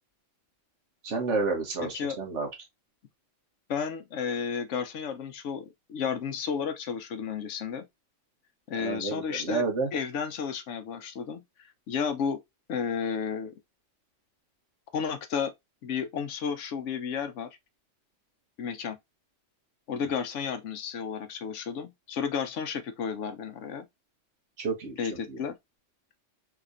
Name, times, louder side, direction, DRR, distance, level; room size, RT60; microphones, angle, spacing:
voice 1, 1.0-2.5 8.7-9.9 20.0-20.1 24.6-25.4, right 4 dB, 75° right, 1.5 m, -30 dB
voice 2, 3.7-7.8 8.7-9.6 9.9-12.4 12.7-13.5 14.9-15.5 15.8-17.5 18.6-19.0 19.9-23.9 25.0-25.6, left 6 dB, 80° left, 1.0 m, -32 dB
3.5 x 3.1 x 2.5 m
omnidirectional pair, 1.2 m